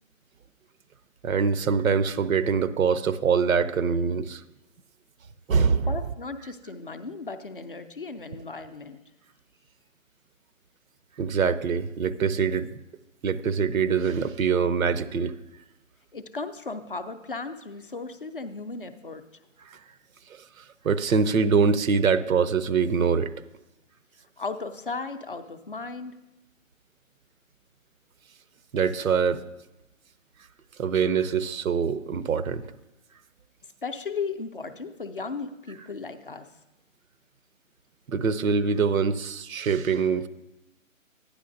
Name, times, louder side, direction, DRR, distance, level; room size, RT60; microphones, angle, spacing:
voice 1, 1.2-4.4 5.5-5.9 11.2-12.7 13.2-15.4 19.7-19.8 20.3-23.3 28.7-29.4 30.8-32.6 38.1-40.3, right 6 dB, 85° right, 14 dB, 0.7 m, -24 dB
voice 2, 5.8-9.0 16.1-19.2 24.4-26.2 33.8-36.5, left 4 dB, 45° left, 9 dB, 0.4 m, -36 dB
12.0 x 9.9 x 2.6 m, 0.94 s
hypercardioid pair, 170°, 40 cm